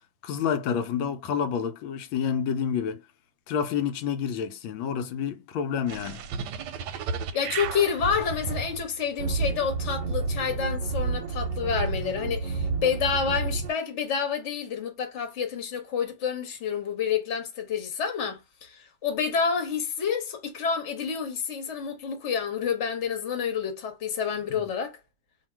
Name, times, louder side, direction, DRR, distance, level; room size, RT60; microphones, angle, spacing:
voice 1, 0.2-3.0 3.5-6.2 24.5-24.7, left 7 dB, 90° left, 1.4 m, -29 dB
sound 1, 5.9-13.7, right 4 dB, 70° right, 1.1 m, -31 dB
voice 2, 7.3-25.0, left 6 dB, 45° left, 1.2 m, -29 dB
2.8 x 2.7 x 4.4 m
omnidirectional pair, 2.1 m